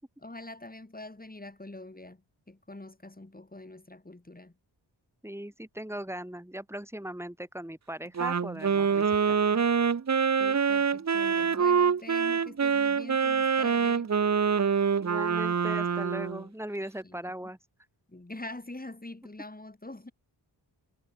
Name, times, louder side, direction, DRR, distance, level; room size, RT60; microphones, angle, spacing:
voice 1, 0.2-4.6 10.4-14.1 17.0-17.5 18.1-20.1, left 2 dB, 20° left, 4.0 m, -45 dB
voice 2, 5.2-9.4 15.0-17.6, right 1 dB, 5° right, 5.9 m, -39 dB
Wind instrument woodwind instrument, 8.1-16.4, right 6 dB, 35° right, 0.8 m, -25 dB
wide cardioid pair, 80°, 45 cm